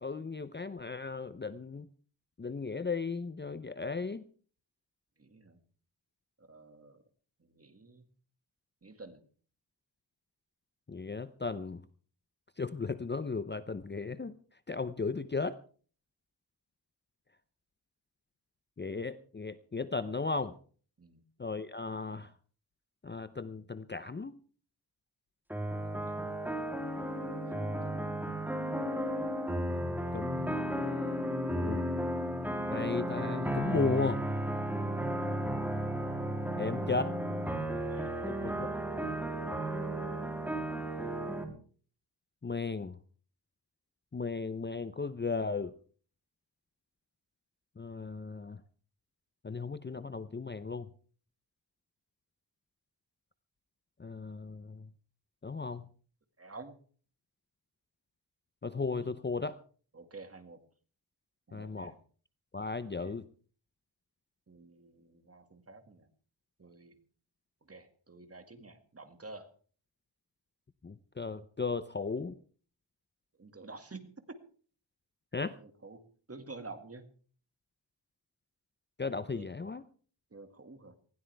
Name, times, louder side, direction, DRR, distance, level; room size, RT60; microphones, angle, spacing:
voice 1, 0.0-1.9 2.4-4.2 10.9-11.8 12.6-14.4 14.7-15.6 18.8-20.6 21.4-22.3 23.0-24.3 29.7-30.6 31.6-31.9 32.7-34.2 36.6-37.2 38.3-38.7 42.4-43.0 44.1-45.7 47.8-48.6 49.4-50.9 54.0-54.9 55.4-55.8 58.6-59.6 61.5-61.9 62.5-63.3 70.8-72.4 75.3-75.6 79.0-79.8, left 4 dB, 25° left, 13 dB, 0.6 m, -35 dB
voice 2, 5.2-5.6 6.4-7.0 7.4-8.1 8.8-9.2 21.0-21.2 25.9-26.4 27.5-28.1 36.7-37.1 37.7-38.2 39.5-39.9 56.4-56.8 59.0-59.1 59.9-60.6 61.5-62.0 62.8-63.2 64.5-66.1 66.6-66.9 67.7-69.5 73.4-74.1 75.6-76.0 76.3-77.1 79.3-79.5 80.3-81.0, right 3 dB, 30° right, 8 dB, 2.1 m, -50 dB
sound 1, 25.5-41.4, right 1 dB, 5° right, 3.2 m, -34 dB
19.5 x 16.5 x 3.4 m, 0.43 s
wide cardioid pair, 100°, 45 cm